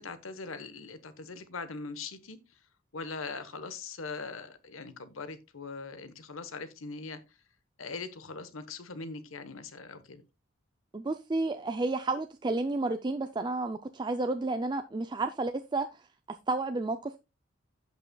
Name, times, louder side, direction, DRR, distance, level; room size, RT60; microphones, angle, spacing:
voice 1, 0.0-2.4 2.9-7.2 7.8-10.3, left 4 dB, 90° left, 1.1 m, -41 dB
voice 2, 10.9-16.0 16.3-17.2, right 2 dB, 20° right, 0.4 m, -31 dB
16.0 x 5.5 x 2.3 m
head